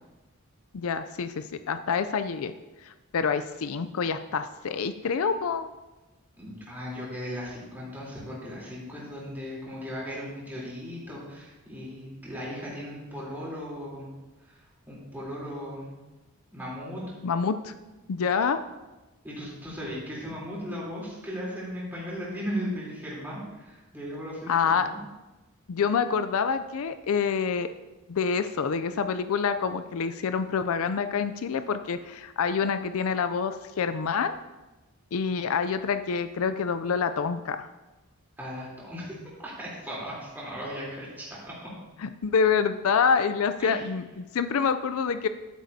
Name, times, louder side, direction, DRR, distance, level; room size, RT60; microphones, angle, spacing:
voice 1, 0.7-2.5 2.8-5.7 17.2-17.7 18.1-18.6 24.5-24.9 25.7-27.7 28.1-34.3 35.1-37.7 42.0-45.3, left 6 dB, 70° left, 11 dB, 0.4 m, -27 dB
voice 2, 6.4-14.1 14.4-14.6 14.9-15.9 16.5-17.0 19.2-25.0 38.4-39.1 39.4-41.7 43.6-43.8, equal, 10° right, -7 dB, 3.4 m, -37 dB
11.5 x 9.5 x 2.8 m, 1.1 s
head